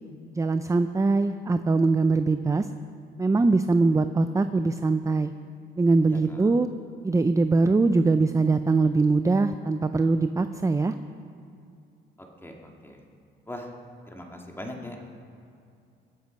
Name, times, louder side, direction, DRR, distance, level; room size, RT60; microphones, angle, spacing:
voice 1, 0.3-2.7 3.2-5.3 5.8-6.7 7.0-11.0, right 3 dB, 15° right, 10 dB, 0.4 m, -22 dB
voice 2, 6.1-6.5 12.4-13.0 13.5-13.7 14.1-15.0, left 1 dB, 10° left, 1 dB, 2.2 m, -40 dB
23.0 x 8.0 x 5.3 m, 2.4 s
cardioid pair, 90°, 20 cm